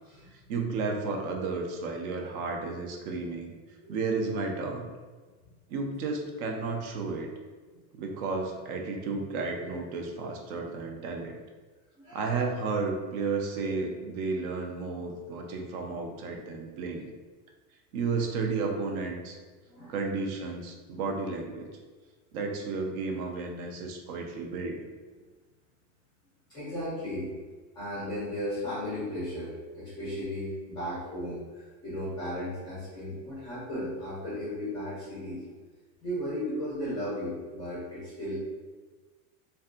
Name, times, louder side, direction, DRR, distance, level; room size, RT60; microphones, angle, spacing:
voice 1, 0.5-3.5 3.9-4.9 5.7-7.3 7.9-11.4 12.1-17.1 17.9-19.4 19.9-21.7 22.3-24.8, right 4 dB, 60° right, 2 dB, 0.5 m, -32 dB
voice 2, 12.0-12.4 19.7-19.9 26.5-27.3 27.7-35.4 36.0-38.4, equal, 10° left, -11 dB, 0.3 m, -35 dB
2.5 x 2.2 x 2.4 m, 1.4 s
supercardioid pair, 165°, 49 cm